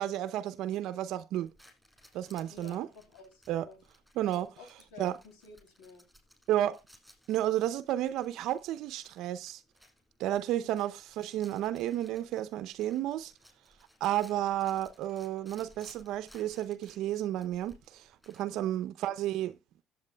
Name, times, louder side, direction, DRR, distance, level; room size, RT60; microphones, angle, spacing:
voice 1, 0.0-1.5 2.1-2.9 3.5-3.7 4.2-4.5 5.0-5.1 6.5-6.8 7.3-9.6 10.2-13.3 14.0-19.6, right 12 dB, 65° right, 0.6 m, -32 dB
sound 1, 1.4-18.6, equal, 5° left, 6.1 m, -61 dB
voice 2, 2.5-3.8 4.6-6.1 10.6-10.7 18.5-18.9, left 4 dB, 80° left, 3.1 m, -53 dB
17.0 x 8.5 x 2.3 m
supercardioid pair, 75°, 0 cm